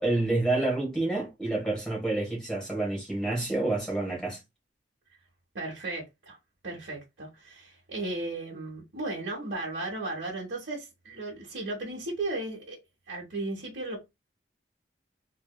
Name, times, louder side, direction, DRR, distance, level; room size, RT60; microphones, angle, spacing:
voice 1, 0.0-4.4, right 2 dB, 5° left, 1.5 m, -28 dB
voice 2, 5.5-6.4 6.6-12.8 13.1-14.0, right 2 dB, 70° right, 1.3 m, -35 dB
3.3 x 3.2 x 2.3 m
head